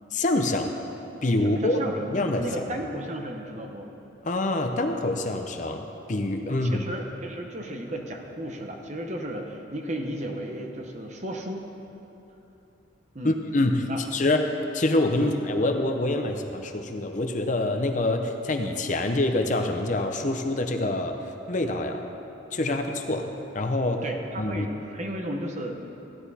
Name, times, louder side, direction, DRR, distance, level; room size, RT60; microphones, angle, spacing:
voice 1, 0.1-0.7 1.2-1.8 2.1-2.4 4.2-6.8 13.2-21.2 21.5-22.0 22.5-24.0 24.4-24.7, left 2 dB, 40° left, 5 dB, 0.6 m, -26 dB
voice 2, 1.4-3.9 6.5-11.6 13.1-13.4 13.9-14.0 15.1-15.3 24.0-25.9, right 1 dB, 35° right, 2 dB, 0.9 m, -34 dB
15.0 x 10.0 x 4.2 m, 2.9 s
head